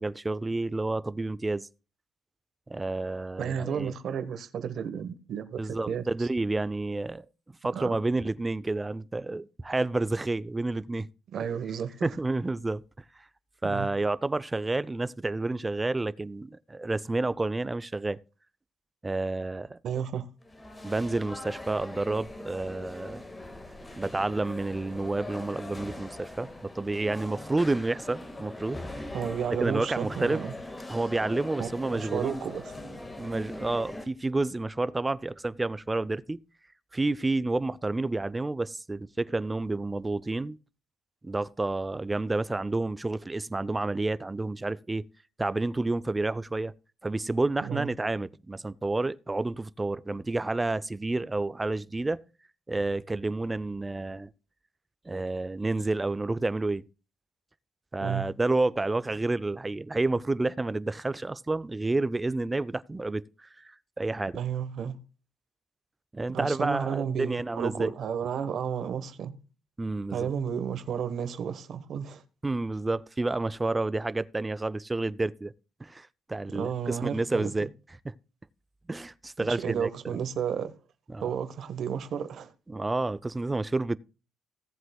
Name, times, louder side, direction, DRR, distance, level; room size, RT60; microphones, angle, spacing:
voice 1, 0.0-1.7 2.7-3.9 5.6-11.1 12.0-13.3 13.6-18.2 19.0-19.8 20.8-23.2 24.0-28.8 29.6-30.4 30.9-32.4 33.2-36.4 36.9-40.6 41.2-45.1 45.4-46.7 47.0-52.2 52.7-54.3 55.0-56.8 57.9-64.4 66.1-67.9 69.8-70.3 72.4-75.5 75.8-77.7 78.9-80.2 81.1-81.3 82.7-84.0, right 2 dB, 20° right, 0.5 m, -30 dB
voice 2, 3.4-6.3 7.7-8.0 11.3-11.9 13.6-13.9 19.8-20.3 29.1-30.5 31.6-32.7 47.6-47.9 58.0-58.3 64.3-65.0 66.3-69.4 70.1-72.2 76.5-77.5 79.4-80.7 81.2-82.5, right 8 dB, 65° right, 1.2 m, -32 dB
sound 1, 20.4-34.0, left 2 dB, 20° left, 1.7 m, -41 dB
17.0 x 7.8 x 2.3 m
cardioid pair, 90°, 0 cm